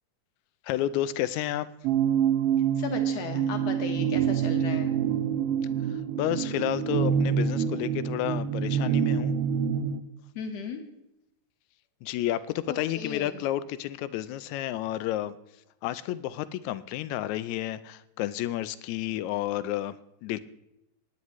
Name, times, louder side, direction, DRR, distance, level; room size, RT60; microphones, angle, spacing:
voice 1, 0.6-1.7 5.9-9.3 12.0-15.4 15.8-20.4, left 13 dB, 80° left, 15 dB, 1.9 m, -31 dB
sound 1, 1.8-10.0, right 8 dB, 85° right, 1.3 m, -26 dB
voice 2, 2.8-5.0 10.4-10.8 12.7-13.2, left 5 dB, 65° left, 5 dB, 2.3 m, -36 dB
18.5 x 9.6 x 3.1 m, 0.83 s
omnidirectional pair, 3.4 m